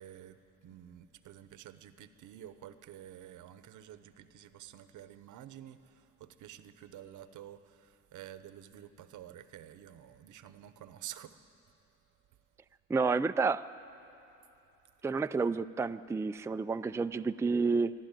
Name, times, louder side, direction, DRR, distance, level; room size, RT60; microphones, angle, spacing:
voice 1, 0.0-11.4, right 11 dB, 80° right, 12 dB, 0.9 m, -50 dB
voice 2, 12.9-13.7 15.0-17.9, right 4 dB, 10° right, 11 dB, 0.4 m, -30 dB
24.0 x 12.5 x 9.0 m, 2.9 s
cardioid pair, 90°, 30 cm